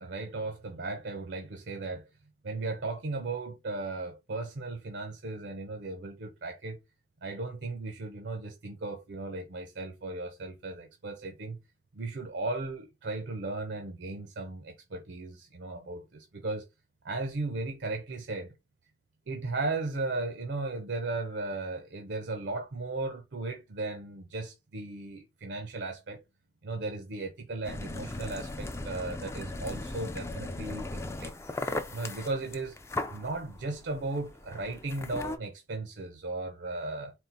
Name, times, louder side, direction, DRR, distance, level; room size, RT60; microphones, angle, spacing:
voice 1, 0.0-2.1 2.4-6.8 7.2-11.6 11.9-16.7 17.0-18.5 19.3-26.2 26.6-31.3 31.9-32.8 33.1-37.1, right 3 dB, 70° right, 0.6 m, -36 dB
sound 1, 27.6-35.4, left 2 dB, 15° left, 0.3 m, -38 dB
4.3 x 2.0 x 3.8 m
head